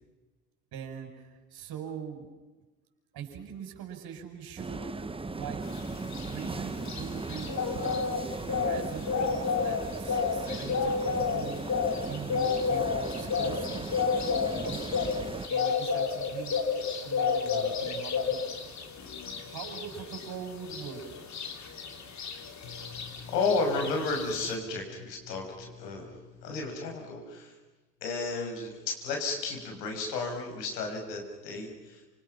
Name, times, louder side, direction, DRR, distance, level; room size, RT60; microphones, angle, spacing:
voice 1, 0.7-2.3 3.1-4.8 5.3-5.6 6.2-14.8 15.5-16.6 17.0-18.4 19.5-21.0, right 7 dB, 45° right, 4 dB, 6.5 m, -42 dB
sound 1, 4.6-15.5, right 3 dB, 10° right, 1.5 m, -38 dB
sound 2, 5.7-24.6, left 5 dB, 35° left, 3.4 m, -31 dB
voice 2, 22.6-27.5 28.0-32.0, left 3 dB, 70° left, 2 dB, 6.8 m, -33 dB
29.5 x 27.5 x 6.0 m, 1.2 s
figure-of-eight pair, 70°, 50 cm